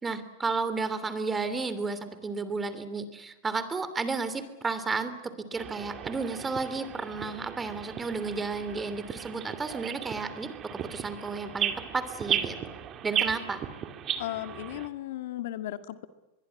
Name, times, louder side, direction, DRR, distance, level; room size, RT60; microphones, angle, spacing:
voice 1, 0.0-12.6 13.0-13.6, right 4 dB, 15° right, 12 dB, 3.0 m, -32 dB
sound 1, 5.6-14.9, right 9 dB, 30° right, 2.4 m, -35 dB
voice 2, 14.2-16.1, left 13 dB, 70° left, 10 dB, 1.8 m, -35 dB
24.5 x 22.0 x 9.8 m, 0.99 s
hypercardioid pair, 125°, 0 cm